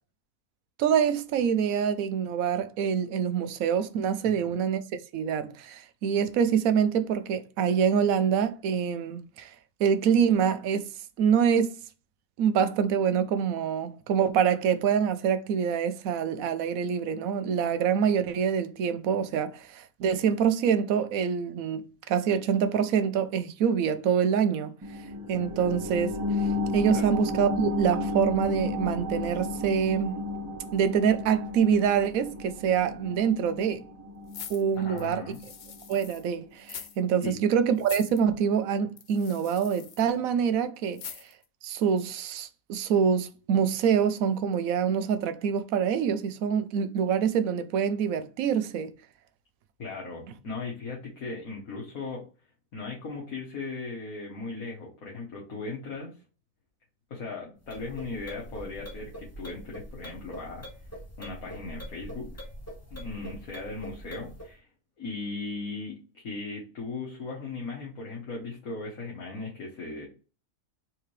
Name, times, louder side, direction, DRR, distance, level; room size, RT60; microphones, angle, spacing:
voice 1, 0.8-4.8 5.1-9.5 9.8-10.8 11.2-11.7 12.4-24.7 25.3-26.1 26.7-30.2 30.7-33.8 34.5-35.2 35.9-41.0 41.6-48.9, right 7 dB, 75° right, 1.0 m, -25 dB
sound 1, 24.8-35.9 36.3-36.4, left 2 dB, 20° right, 0.4 m, -33 dB
sound 2, 34.3-36.3 36.6-37.0 37.2-37.3 37.8-38.2 39.0-40.1 40.9-41.4 41.9-42.0, left 7 dB, 85° left, 0.4 m, -43 dB
voice 2, 34.8-35.4 37.2-37.4 49.8-52.2 52.7-56.1 57.1-60.7 61.2-62.3 62.9-64.7 65.0-70.1, left 3 dB, 70° left, 1.7 m, -38 dB
sound 3, 57.6-64.5, equal, 10° left, 1.0 m, -43 dB
4.7 x 3.4 x 3.2 m
omnidirectional pair, 1.5 m